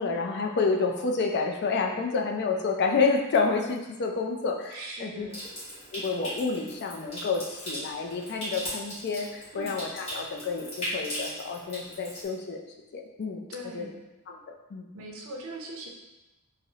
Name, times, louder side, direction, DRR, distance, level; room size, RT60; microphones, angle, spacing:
voice 1, 0.0-5.3 5.9-12.6 12.9-13.4 13.7-13.9 14.3-14.4 14.7-14.8, left 4 dB, 50° left, 2 dB, 0.4 m, -29 dB
voice 2, 4.7-5.5 9.5-9.7 13.5-14.0 14.9-15.9, right 1 dB, 65° right, 0 dB, 0.5 m, -40 dB
Water tap faucet / Sink (filling or washing) / Trickle dribble, 5.3-12.3, equal, 30° left, 1.4 m, -38 dB
4.0 x 2.0 x 2.7 m, 1.0 s
head